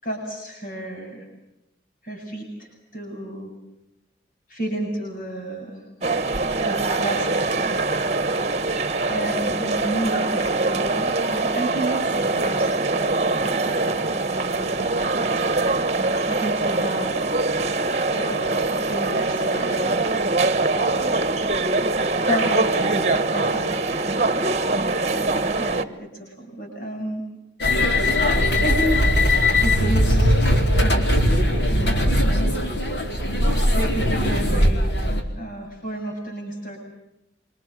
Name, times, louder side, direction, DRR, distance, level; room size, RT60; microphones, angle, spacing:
voice 1, 0.0-1.3 2.0-3.5 4.5-5.8 6.6-7.8 9.1-17.3 18.1-20.0 20.8-21.2 22.3-24.0 25.1-27.2 28.6-29.1 29.6-30.4 30.8-32.6 33.8-36.8, right 1 dB, 50° left, 0 dB, 7.3 m, -32 dB
sound 1, 6.0-25.8, right 3 dB, 40° right, 1.3 m, -23 dB
sound 2, 27.6-35.2, left 1 dB, 70° left, 4.5 m, -19 dB
26.5 x 26.5 x 7.6 m, 0.89 s
head